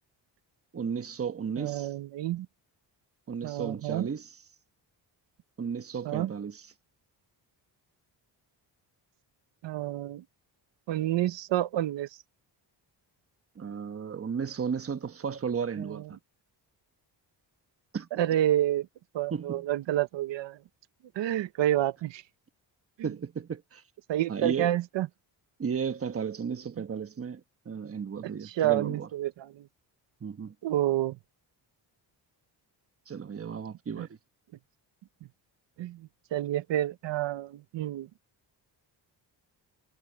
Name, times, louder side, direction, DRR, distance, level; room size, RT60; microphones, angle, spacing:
voice 1, 0.7-1.9 3.3-4.4 5.6-6.7 13.5-16.2 17.9-18.1 19.3-19.7 23.0-23.8 24.3-24.7 25.6-29.1 30.2-30.5 33.1-34.2, right 6 dB, 30° right, 1.1 m, -34 dB
voice 2, 1.6-2.5 3.4-4.1 6.0-6.3 9.6-10.2 10.9-12.1 15.8-16.0 18.2-18.9 19.1-20.6 21.2-22.2 24.1-25.1 28.4-29.7 30.6-31.2 34.0-34.1 35.8-38.1, right 13 dB, 90° right, 1.0 m, -29 dB
cardioid pair, 100°, 43 cm